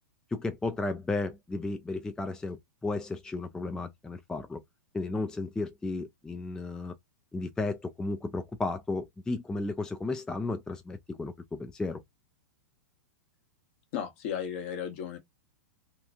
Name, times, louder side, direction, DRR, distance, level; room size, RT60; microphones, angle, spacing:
voice 1, 0.3-4.6 4.9-6.9 7.3-12.0, left 3 dB, 10° left, 0.3 m, -34 dB
voice 2, 13.9-15.2, left 8 dB, 55° left, 1.1 m, -34 dB
2.8 x 2.4 x 2.3 m
hypercardioid pair, 120°, 9 cm